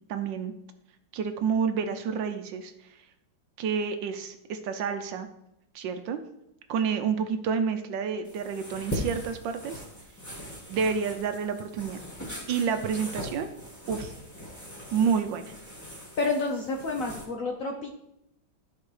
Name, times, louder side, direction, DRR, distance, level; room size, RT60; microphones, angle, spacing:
voice 1, 0.1-0.5 1.1-2.7 3.6-5.3 5.7-6.2 6.7-9.8 10.7-12.0 12.5-13.5 13.9-14.1 14.9-15.5, right 6 dB, 75° right, 8 dB, 1.3 m, -29 dB
sound 1, 8.2-17.2, equal, 10° left, 1.2 m, -40 dB
voice 2, 16.2-17.9, left 3 dB, 60° left, 1 dB, 0.9 m, -29 dB
13.5 x 4.6 x 3.2 m, 0.84 s
omnidirectional pair, 2.2 m